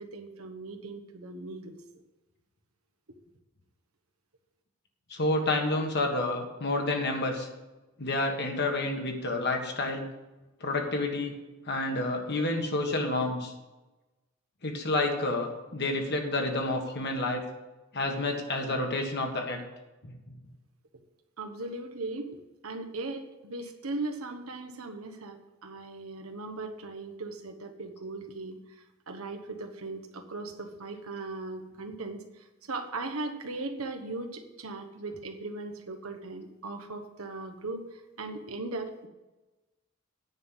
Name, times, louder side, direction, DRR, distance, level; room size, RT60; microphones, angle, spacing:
voice 1, 0.0-1.8 21.4-22.4 22.6-39.1, right 2 dB, 90° right, 5 dB, 1.2 m, -38 dB
voice 2, 5.1-7.5 8.0-10.1 10.6-11.4 11.7-13.5 14.6-17.4 17.9-19.6 20.0-20.1, left 2 dB, 55° left, 3 dB, 1.5 m, -29 dB
9.6 x 5.6 x 7.9 m, 1.1 s
head